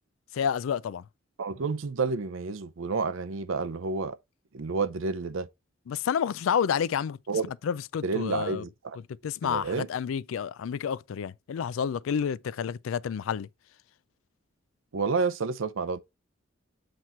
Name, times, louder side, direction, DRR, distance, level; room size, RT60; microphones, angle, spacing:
voice 1, 0.3-1.0 5.9-7.2 7.6-8.6 9.2-13.5, left 7 dB, 85° left, 0.3 m, -29 dB
voice 2, 1.4-4.2 4.5-5.5 7.3-7.5 8.0-9.0 9.4-9.9 14.9-16.0, right 4 dB, 75° right, 0.6 m, -30 dB
7.8 x 3.0 x 4.2 m
head